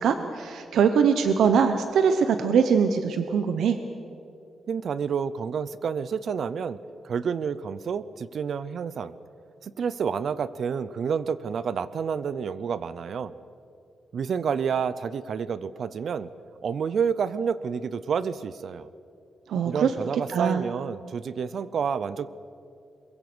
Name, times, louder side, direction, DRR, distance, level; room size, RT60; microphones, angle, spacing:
voice 1, 0.0-3.8 19.5-19.9 20.3-20.6, right 6 dB, 80° right, 8 dB, 1.0 m, -22 dB
voice 2, 4.7-6.8 7.0-9.1 9.6-13.3 14.1-16.3 16.6-18.9 19.6-22.3, right 6 dB, 55° right, 16 dB, 0.6 m, -29 dB
23.0 x 22.0 x 6.2 m, 2.6 s
wide cardioid pair, 160°, 0 cm